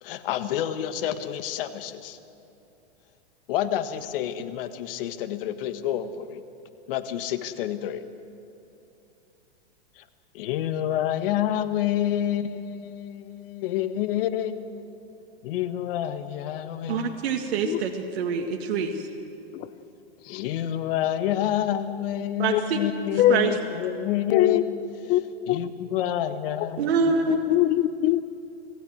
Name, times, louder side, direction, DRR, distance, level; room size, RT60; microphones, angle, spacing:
voice 1, 0.0-2.2 3.5-6.4 6.9-8.0 10.0-10.1 10.3-14.6 15.4-17.2 20.3-24.6 25.5-26.8, left 11 dB, 55° left, 10 dB, 1.6 m, -28 dB
voice 2, 16.9-19.1 22.4-22.8 23.3-23.6 26.8-27.4, right 5 dB, 70° right, 2 dB, 1.9 m, -25 dB
voice 3, 24.3-24.6 25.1-25.2 25.5-25.6 27.3-28.2, left 15 dB, 30° left, 15 dB, 0.6 m, -21 dB
26.5 x 16.5 x 7.9 m, 2.7 s
hypercardioid pair, 145°, 33 cm